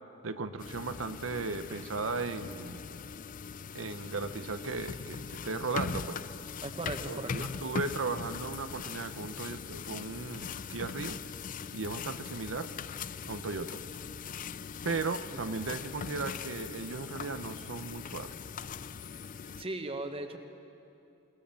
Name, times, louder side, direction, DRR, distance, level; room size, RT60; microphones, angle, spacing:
voice 1, 0.2-2.8 3.7-6.2 7.1-11.2 11.7-12.7 13.3-13.8 14.8-18.3, right 4 dB, 85° right, 9 dB, 0.8 m, -36 dB
sound 1, 0.6-19.6, left 6 dB, 40° left, 0.4 m, -41 dB
voice 2, 6.6-7.5 15.3-15.4 19.6-20.4, right 2 dB, 30° right, 6 dB, 1.5 m, -38 dB
28.0 x 18.5 x 7.1 m, 2.7 s
head